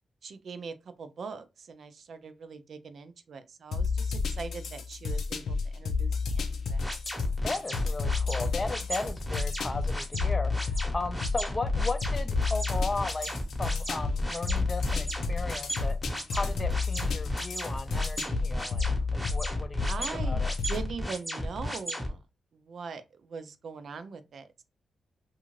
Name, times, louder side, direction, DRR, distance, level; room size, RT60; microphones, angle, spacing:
voice 1, 0.2-6.8 19.9-22.2 22.5-24.6, right 5 dB, 60° right, 0.4 m, -41 dB
sound 1, 3.7-20.9, left 4 dB, 80° left, 0.5 m, -31 dB
sound 2, 6.8-22.1, equal, ahead, 0.9 m, -35 dB
voice 2, 7.4-13.3 13.6-20.5, left 3 dB, 25° left, 0.5 m, -36 dB
2.6 x 2.4 x 3.0 m
cardioid pair, 105°, 0 cm